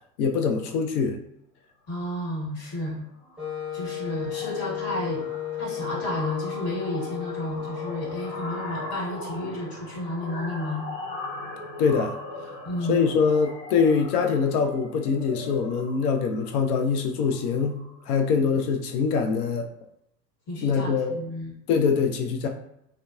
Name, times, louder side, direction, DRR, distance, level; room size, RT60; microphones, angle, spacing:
voice 1, 0.2-1.2 11.8-12.1 12.9-17.8 18.1-19.7 20.6-21.2 21.7-22.5, left 5 dB, 65° left, 4 dB, 0.6 m, -23 dB
voice 2, 1.9-3.0 3.7-5.2 5.6-10.9 12.6-13.1 20.5-21.5, left 1 dB, 45° left, -3 dB, 1.4 m, -31 dB
sound 1, 2.3-2.4 2.7-3.0 3.2-18.1, left 2 dB, 20° left, 0.5 m, -40 dB
Wind instrument woodwind instrument, 3.4-9.0, left 11 dB, ahead, 0.9 m, -34 dB
2.8 x 2.1 x 2.3 m, 0.77 s
figure-of-eight pair, 80°, 50 cm